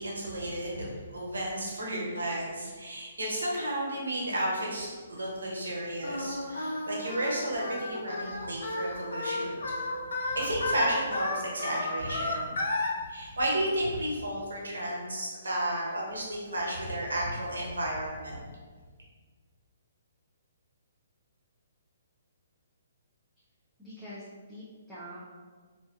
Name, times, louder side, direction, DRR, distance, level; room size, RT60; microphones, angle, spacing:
voice 1, 0.0-9.6 10.2-12.6 13.1-18.5, right 1 dB, 85° right, -3 dB, 0.8 m, -33 dB
Singing, 6.0-12.9, left 2 dB, 75° left, 0.5 m, -33 dB
voice 2, 23.8-25.2, equal, ahead, -13 dB, 0.5 m, -45 dB
2.5 x 2.2 x 2.3 m, 1.5 s
hypercardioid pair, 135°, 0 cm